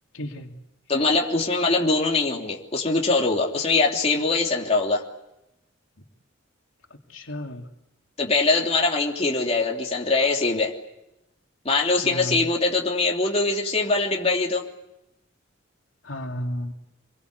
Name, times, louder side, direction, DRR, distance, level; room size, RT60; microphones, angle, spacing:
voice 1, 0.1-0.5 7.1-7.7 12.0-12.4 16.0-16.7, equal, 80° left, 2 dB, 3.0 m, -32 dB
voice 2, 0.9-5.0 8.2-10.7 11.6-14.6, left 3 dB, 30° left, 0 dB, 3.3 m, -22 dB
28.0 x 23.0 x 8.2 m, 0.89 s
head